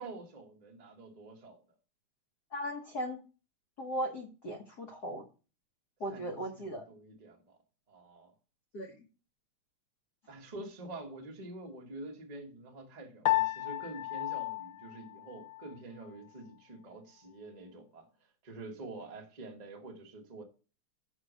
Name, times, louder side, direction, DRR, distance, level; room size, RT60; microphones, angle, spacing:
voice 1, 0.0-1.6 6.1-7.6 7.9-8.3 10.3-18.1 18.4-20.4, right 2 dB, 75° right, 0.3 m, -47 dB
voice 2, 2.5-3.2 3.8-5.2 6.0-6.8 8.7-8.9, equal, 75° left, 0.9 m, -37 dB
Piano, 13.3-15.8, left 17 dB, 90° left, 2.0 m, -33 dB
6.4 x 6.1 x 6.2 m
omnidirectional pair, 3.4 m